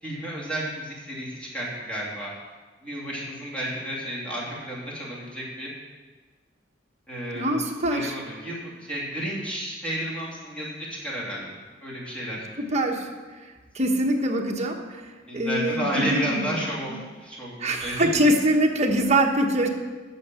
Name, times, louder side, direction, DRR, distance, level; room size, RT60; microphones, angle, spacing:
voice 1, 0.0-2.3 2.8-5.7 7.1-7.6 7.9-12.4 15.2-18.2, right 1 dB, 5° left, -6 dB, 2.7 m, -32 dB
voice 2, 7.3-8.1 12.6-13.1 13.7-15.0 15.3-16.5 16.9-17.0 17.6-19.7, right 1 dB, 35° right, 1 dB, 1.1 m, -23 dB
8.7 x 6.5 x 6.9 m, 1.4 s
head